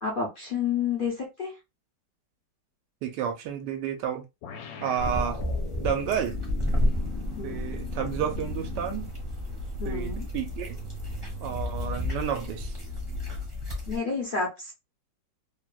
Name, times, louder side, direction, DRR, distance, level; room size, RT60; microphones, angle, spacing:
voice 1, 0.0-1.5 7.4-7.6 9.8-10.3 11.8-12.0 13.9-14.7, left 5 dB, 50° left, 0.6 m, -30 dB
voice 2, 3.0-4.2 4.8-5.4 5.8-6.4 7.4-9.1 9.8-10.8 11.4-12.7, right 8 dB, 75° right, 1.2 m, -31 dB
sound 1, 4.4-9.1, left 4 dB, 85° left, 1.2 m, -40 dB
sound 2, 5.0-14.0, left 1 dB, 25° right, 0.7 m, -32 dB
Accelerating revving vroom, 6.9-13.5, equal, 60° right, 0.9 m, -39 dB
3.0 x 2.2 x 2.2 m
omnidirectional pair, 1.9 m